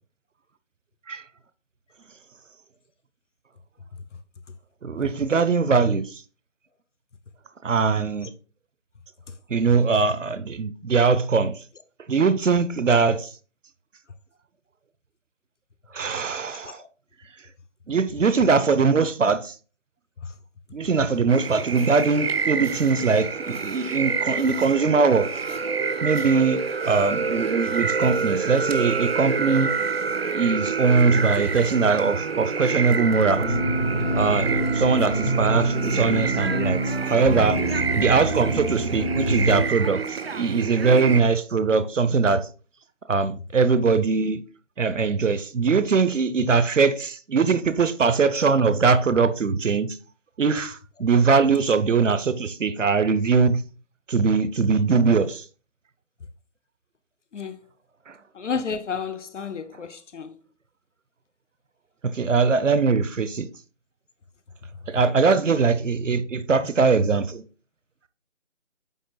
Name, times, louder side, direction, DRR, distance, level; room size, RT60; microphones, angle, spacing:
voice 1, 4.8-6.2 7.6-8.3 9.5-11.6 12.1-13.3 15.9-16.8 17.9-19.5 20.7-25.3 26.0-29.7 30.3-33.5 34.2-37.6 37.9-42.5 43.1-44.4 44.8-50.0 50.4-53.6 54.1-55.4 58.1-58.2 62.0-63.5 64.9-67.4, right 4 dB, 80° right, 0.9 m, -21 dB
sound 1, 21.3-41.2, right 5 dB, 55° right, 0.6 m, -28 dB
sound 2, 33.3-39.6, right 1 dB, 25° left, 2.7 m, -26 dB
voice 2, 58.4-60.3, left 6 dB, 70° left, 0.8 m, -31 dB
9.1 x 6.5 x 2.3 m
figure-of-eight pair, 170°, 37 cm